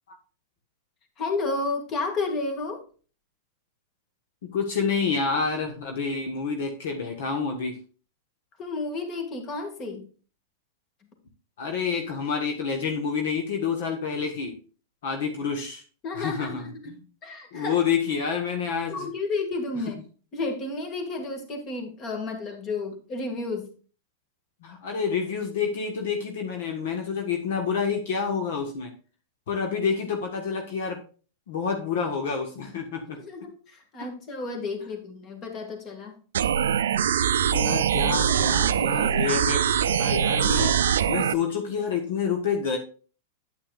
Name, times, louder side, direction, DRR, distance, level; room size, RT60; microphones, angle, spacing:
voice 1, 1.2-2.8 8.6-10.1 16.0-17.8 18.9-20.0 20.3-23.7 33.0-36.2, left 3 dB, 35° left, 4 dB, 2.1 m, -32 dB
voice 2, 4.4-7.8 11.6-14.5 15.0-15.8 16.2-17.0 17.5-19.1 24.6-28.9 29.5-31.0 31.5-33.2 37.5-40.7 41.1-42.8, left 6 dB, 70° left, 3 dB, 1.4 m, -28 dB
sound 1, 36.3-41.3, right 9 dB, 80° right, 0.4 m, -23 dB
8.8 x 8.6 x 2.5 m, 0.38 s
hypercardioid pair, 120°, 0 cm